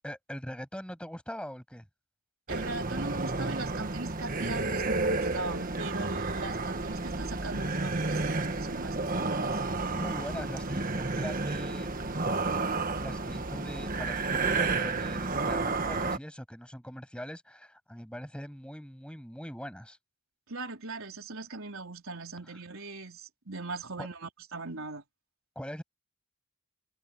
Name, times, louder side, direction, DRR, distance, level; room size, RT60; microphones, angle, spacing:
voice 1, 0.0-1.8 9.9-12.0 13.0-20.0 24.0-24.1 25.6-25.8, equal, 5° left, 7.0 m, -41 dB
sound 1, 2.5-16.2, right 3 dB, 40° right, 1.5 m, -31 dB
voice 2, 2.5-9.6 20.5-25.0, right 3 dB, 65° right, 4.0 m, -39 dB
head